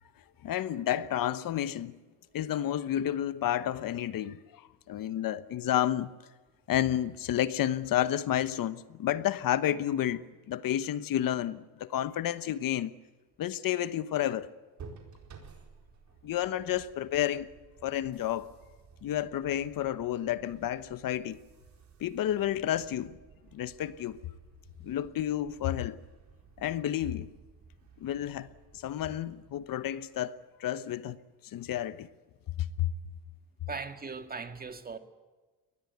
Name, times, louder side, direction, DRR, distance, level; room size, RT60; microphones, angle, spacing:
voice 1, 0.4-2.0 2.3-6.1 6.7-12.9 13.4-14.5 16.2-17.5 17.8-18.5 19.0-21.4 22.0-23.2 23.5-24.2 24.8-26.0 26.6-27.3 28.0-31.2 31.4-32.1 32.6-32.9, left 11 dB, 55° left, 1.1 m, -31 dB
sound 1, 14.8-30.5, right 5 dB, 40° right, 4.5 m, -55 dB
voice 2, 33.7-35.0, right 4 dB, 20° right, 1.9 m, -39 dB
23.0 x 19.5 x 8.3 m
cardioid pair, 115°, 41 cm